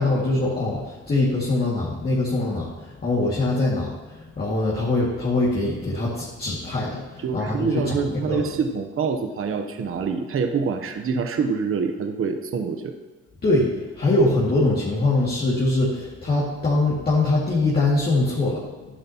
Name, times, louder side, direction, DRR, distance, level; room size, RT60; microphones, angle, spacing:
voice 1, 0.0-8.4 13.4-13.7 14.0-18.6, left 2 dB, 30° left, -7 dB, 2.2 m, -23 dB
voice 2, 7.2-12.9, right 5 dB, 45° right, 6 dB, 0.9 m, -26 dB
11.5 x 9.7 x 3.0 m, 1.2 s
cardioid pair, 90°, 30 cm